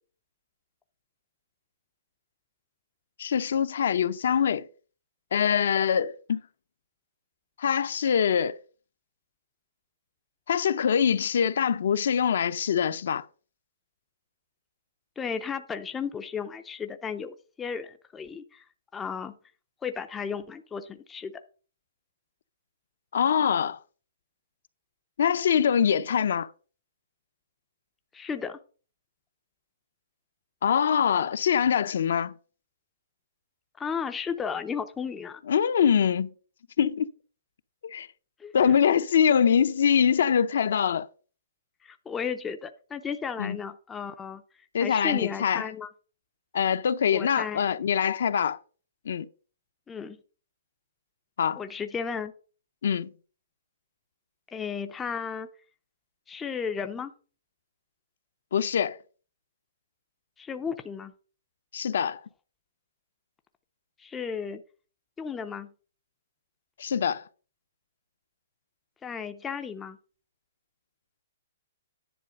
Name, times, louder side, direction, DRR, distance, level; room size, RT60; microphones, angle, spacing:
voice 1, 3.2-4.7 5.3-6.4 7.6-8.6 10.5-13.3 23.1-23.8 25.2-26.5 30.6-32.3 35.5-36.3 36.8-37.1 37.8-38.1 38.5-41.1 43.4-43.6 44.7-45.7 46.5-48.6 49.1-49.3 51.4-51.6 52.8-53.1 58.5-59.0 61.7-62.2 66.8-67.3, left 8 dB, 60° left, 0.5 m, -24 dB
voice 2, 15.2-18.6 18.9-19.4 19.8-21.3 28.1-28.6 33.8-35.4 38.4-38.8 41.8-44.4 44.8-45.9 47.1-47.6 49.9-50.2 51.6-52.3 54.5-55.5 56.3-57.1 60.4-61.1 64.0-64.6 65.2-65.7 69.0-70.0, left 6 dB, 10° left, 0.4 m, -34 dB
10.0 x 4.0 x 6.3 m
hypercardioid pair, 175°, 0 cm